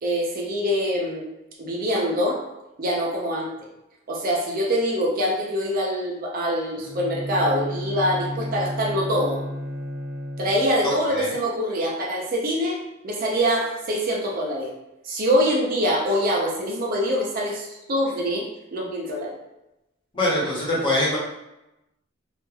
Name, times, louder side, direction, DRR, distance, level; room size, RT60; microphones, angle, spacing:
voice 1, 0.0-1.3 1.6-2.4 2.8-3.5 4.1-9.4 10.4-12.8 13.0-14.7 15.0-18.5 18.7-19.4, equal, 45° right, -2 dB, 0.5 m, -24 dB
Bowed string instrument, 6.7-10.8, left 1 dB, 75° left, 0.6 m, -32 dB
voice 2, 20.1-21.2, left 1 dB, 25° left, -7 dB, 1.0 m, -23 dB
2.4 x 2.2 x 3.1 m, 0.92 s
head